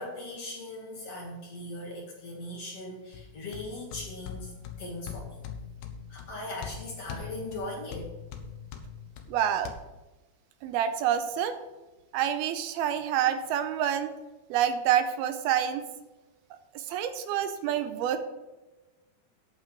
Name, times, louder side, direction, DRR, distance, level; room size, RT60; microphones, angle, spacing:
voice 1, 0.0-5.4 6.1-8.1, left 1 dB, 45° left, -3 dB, 2.5 m, -39 dB
sound 1, 3.1-9.7, left 7 dB, 75° left, 1.8 m, -42 dB
voice 2, 9.3-9.7 10.6-11.6 12.1-14.1 14.5-15.8 16.9-18.2, right 10 dB, 85° right, 10 dB, 2.6 m, -27 dB
9.2 x 5.7 x 7.6 m, 1.1 s
omnidirectional pair, 4.5 m